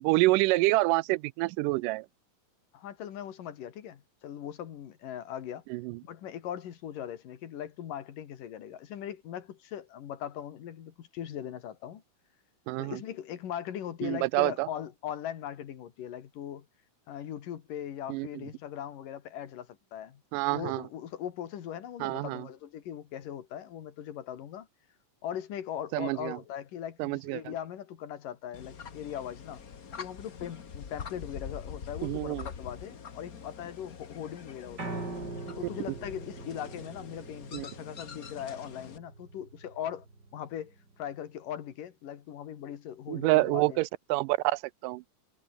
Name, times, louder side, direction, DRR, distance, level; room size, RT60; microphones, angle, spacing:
voice 1, 0.0-2.1 5.7-6.0 12.7-13.0 14.0-14.7 18.1-18.3 20.3-20.8 22.0-22.5 25.9-26.4 27.0-27.4 32.0-32.5 37.5-37.7 43.1-45.0, right 21 dB, 80° right, 2.1 m, -27 dB
voice 2, 2.7-5.6 6.0-12.0 12.8-16.7 17.1-20.2 20.5-24.7 25.2-29.6 30.0-35.1 35.6-40.1 40.3-43.8, left 10 dB, 75° left, 3.6 m, -40 dB
sound 1, 28.5-39.0, left 6 dB, 45° left, 1.2 m, -45 dB
Piano, 34.8-41.0, right 3 dB, 30° right, 5.3 m, -43 dB
omnidirectional pair, 3.9 m